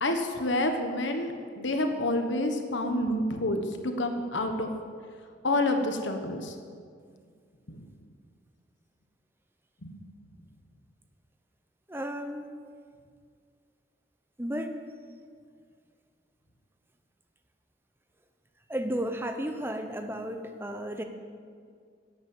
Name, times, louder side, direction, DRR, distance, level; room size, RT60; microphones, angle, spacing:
voice 1, 0.0-4.7 5.4-6.5 7.7-7.8 9.8-10.0, left 1 dB, 85° left, 5 dB, 1.3 m, -28 dB
voice 2, 11.9-12.5 14.4-14.8 18.7-21.0, equal, 10° right, 6 dB, 0.7 m, -33 dB
11.0 x 8.8 x 7.4 m, 2.1 s
head